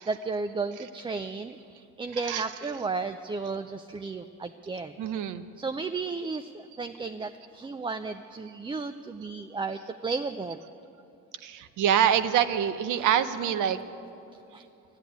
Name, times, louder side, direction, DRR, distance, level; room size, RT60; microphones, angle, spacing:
voice 1, 0.1-1.6 2.0-4.9 5.6-10.6 14.5-14.6, right 4 dB, 15° right, 9 dB, 0.4 m, -33 dB
voice 2, 2.1-2.7 5.0-5.4 11.4-13.8, right 9 dB, 85° right, 12 dB, 0.7 m, -26 dB
12.0 x 9.8 x 9.3 m, 2.7 s
cardioid pair, 90°, 30 cm